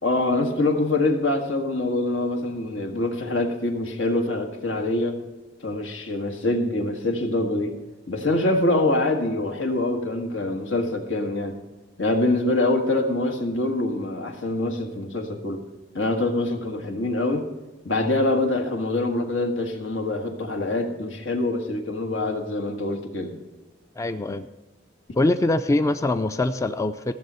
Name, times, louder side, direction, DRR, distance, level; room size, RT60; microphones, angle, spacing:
voice 1, 0.0-5.2 5.6-7.8 8.1-11.5 12.0-15.6 15.9-17.5 17.8-23.4, left 2 dB, 85° left, 4 dB, 1.6 m, -25 dB
voice 2, 24.0-24.5 25.2-27.1, left 2 dB, 15° left, 10 dB, 0.3 m, -23 dB
14.5 x 7.3 x 5.5 m, 1.1 s
head